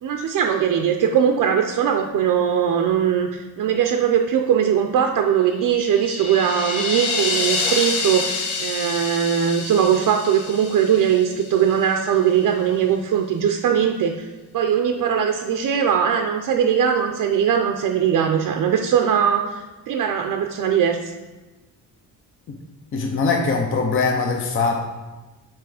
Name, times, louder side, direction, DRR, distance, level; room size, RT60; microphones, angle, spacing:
voice 1, 0.0-14.3 14.5-21.1, right 8 dB, 65° right, 4 dB, 0.5 m, -20 dB
sound 1, 5.6-11.8, left 3 dB, 55° left, 0.9 m, -27 dB
voice 2, 22.9-24.9, left 4 dB, 35° left, 2 dB, 0.6 m, -21 dB
5.8 x 4.5 x 4.8 m, 1.2 s
wide cardioid pair, 170°, 35 cm